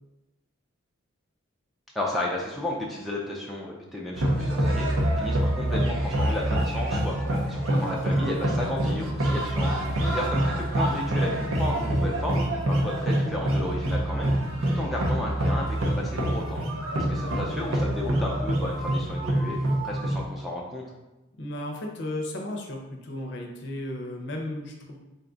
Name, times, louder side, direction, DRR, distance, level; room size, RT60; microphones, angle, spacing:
voice 1, 1.9-7.2 7.5-10.4 10.7-14.3 14.6-16.6 17.0-19.6 19.8-20.8, left 1 dB, ahead, -3 dB, 0.4 m, -33 dB
sound 1, 4.1-20.3, right 1 dB, 80° right, 0.7 m, -26 dB
voice 2, 9.8-10.2 12.7-12.8 17.3-17.7 21.4-25.0, left 1 dB, 55° left, 1 dB, 0.6 m, -35 dB
4.0 x 2.3 x 3.8 m, 1.0 s
head